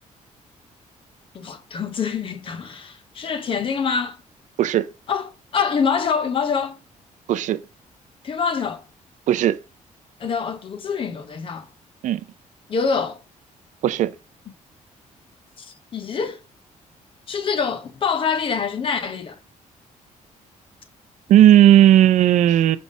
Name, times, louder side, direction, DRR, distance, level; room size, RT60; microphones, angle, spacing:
voice 1, 1.3-4.2 5.1-6.8 8.2-8.8 10.2-11.7 12.7-13.2 15.6-16.4 17.3-19.4, left 6 dB, 40° left, 0.8 m, -25 dB
voice 2, 21.3-22.8, right 12 dB, 65° right, 0.5 m, -15 dB
5.2 x 3.5 x 5.2 m
cardioid pair, 160°, 14 cm